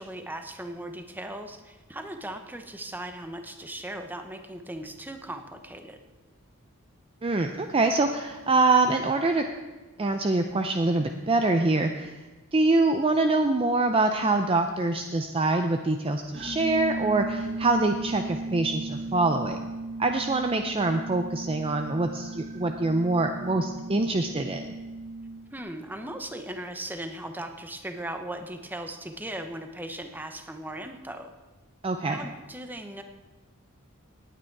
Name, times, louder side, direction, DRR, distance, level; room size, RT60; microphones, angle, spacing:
voice 1, 0.0-6.0 25.5-31.3 32.1-33.0, right 1 dB, 10° right, 6 dB, 0.9 m, -38 dB
voice 2, 7.2-9.4 10.0-12.1 12.5-19.6 20.0-24.7 31.8-32.2, right 2 dB, 25° right, 6 dB, 0.5 m, -25 dB
sound 1, 16.3-25.6, right 2 dB, 45° right, 1.5 m, -36 dB
18.0 x 8.9 x 4.7 m, 1.2 s
head